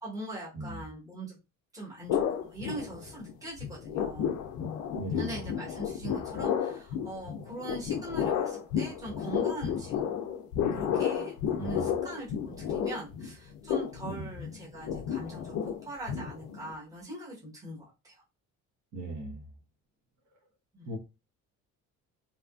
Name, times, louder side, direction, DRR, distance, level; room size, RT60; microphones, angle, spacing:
voice 1, 0.0-1.4 1.7-2.2 2.5-4.4 5.1-10.0 10.7-18.2 20.7-20.9, right 1 dB, 10° right, -5 dB, 1.1 m, -41 dB
sound 1, 2.1-3.3 3.6-16.8, left 8 dB, 65° left, 0.4 m, -32 dB
voice 2, 4.9-5.3 11.6-11.9 14.0-14.3 18.9-19.4 20.9-21.0, right 2 dB, 60° right, 2 dB, 1.1 m, -38 dB
2.8 x 2.3 x 2.3 m, 0.27 s
cardioid pair, 150°, 32 cm